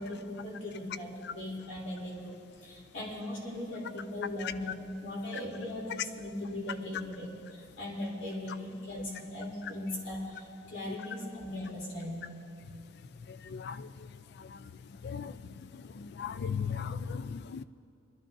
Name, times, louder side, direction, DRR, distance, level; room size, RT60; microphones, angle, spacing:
voice 1, 0.0-12.3, left 1 dB, 75° left, -4 dB, 3.1 m, -39 dB
voice 2, 13.3-14.1 14.4-14.6 15.0-15.4 15.7-17.6, left 6 dB, 60° left, 12 dB, 0.4 m, -37 dB
24.5 x 13.0 x 2.6 m, 2.5 s
head